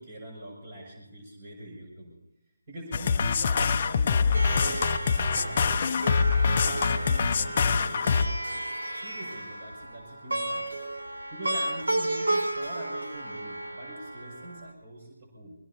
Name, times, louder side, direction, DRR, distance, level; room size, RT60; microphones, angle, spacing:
voice 1, 0.0-2.2 2.7-5.9 6.5-10.7 11.3-15.6, right 1 dB, 35° right, -1 dB, 7.1 m, -43 dB
sound 1, 2.9-8.3, left 5 dB, 35° left, 0.8 m, -25 dB
Plucked string instrument, 4.3-14.7, right 1 dB, 75° right, 3.6 m, -33 dB
23.0 x 20.0 x 2.9 m, 0.92 s
figure-of-eight pair, 160°, 0 cm